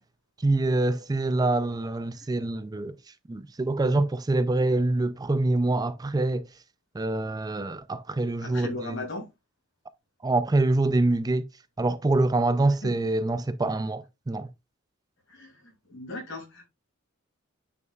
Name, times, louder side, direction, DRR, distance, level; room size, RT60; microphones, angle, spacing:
voice 1, 0.4-2.9 3.3-6.4 6.9-9.0 10.2-11.4 11.8-14.5, right 2 dB, 20° right, 0.4 m, -25 dB
voice 2, 8.4-9.3 12.8-12.9 15.3-16.7, left 2 dB, 60° left, 3.9 m, -37 dB
9.4 x 5.4 x 2.3 m
head